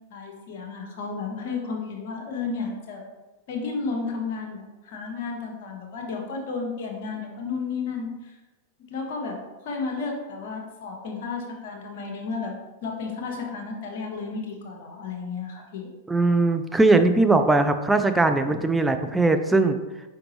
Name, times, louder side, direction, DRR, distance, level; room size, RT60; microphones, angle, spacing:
voice 1, 0.1-3.1 3.5-8.3 8.9-12.5 12.8-15.9, left 4 dB, 60° left, 1 dB, 1.1 m, -32 dB
voice 2, 16.1-19.8, right 2 dB, 10° right, 7 dB, 0.4 m, -20 dB
4.8 x 3.5 x 3.0 m, 1.1 s
hypercardioid pair, 105°, 0 cm